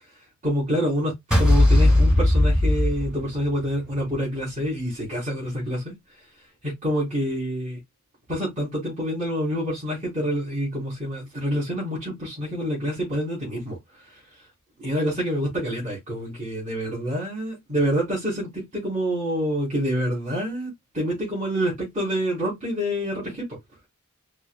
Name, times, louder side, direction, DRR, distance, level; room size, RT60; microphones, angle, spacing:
voice 1, 0.4-5.9 6.6-7.8 8.3-13.8 14.8-23.4, equal, 35° right, 3.3 m, -27 dB
sound 1, 1.3-3.6, left 1 dB, 5° right, 2.1 m, -18 dB
5.6 x 3.5 x 2.2 m
head